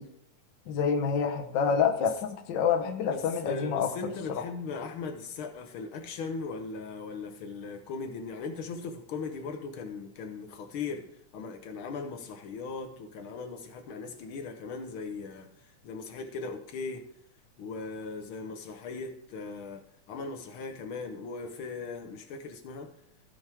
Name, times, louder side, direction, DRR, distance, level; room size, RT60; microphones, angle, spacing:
voice 1, 0.7-3.9, left 6 dB, 85° left, 4 dB, 1.0 m, -27 dB
voice 2, 3.0-11.1 11.3-17.0 17.6-22.9, left 4 dB, 70° left, 6 dB, 1.3 m, -39 dB
16.0 x 6.1 x 3.5 m, 0.72 s
omnidirectional pair, 3.4 m